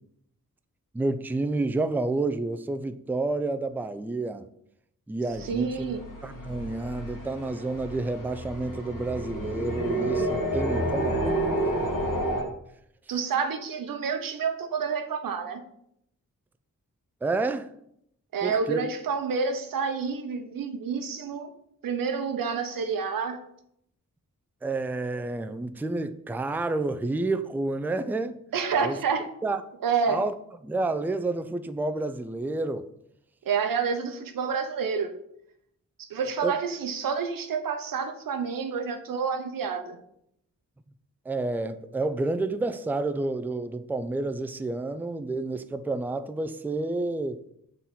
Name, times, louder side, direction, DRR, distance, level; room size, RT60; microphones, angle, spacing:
voice 1, 0.9-4.4 5.1-6.0 6.2-12.2 17.2-17.7 18.4-18.9 24.6-28.4 28.8-29.0 29.4-29.6 30.1-30.3 30.6-32.9 36.4-36.6 41.3-47.4, right 2 dB, 5° right, 0.4 m, -30 dB
sound 1, 5.3-12.4, right 1 dB, 70° left, 1.7 m, -30 dB
voice 2, 5.4-6.0 13.1-15.6 18.3-21.5 21.8-23.4 28.5-29.2 29.8-30.2 33.5-35.1 36.0-40.0, right 5 dB, 90° right, 0.7 m, -28 dB
6.0 x 3.9 x 4.1 m
cardioid pair, 60°, 33 cm